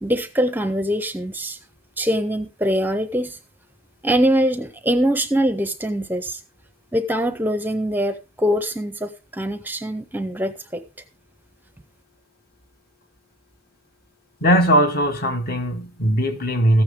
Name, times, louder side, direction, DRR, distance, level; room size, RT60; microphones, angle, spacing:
voice 1, 0.0-1.6 2.0-3.4 4.0-6.4 6.9-10.8, equal, 10° right, 0.6 m, -23 dB
voice 2, 14.4-16.8, equal, 45° left, 1.5 m, -19 dB
14.5 x 9.4 x 3.6 m
head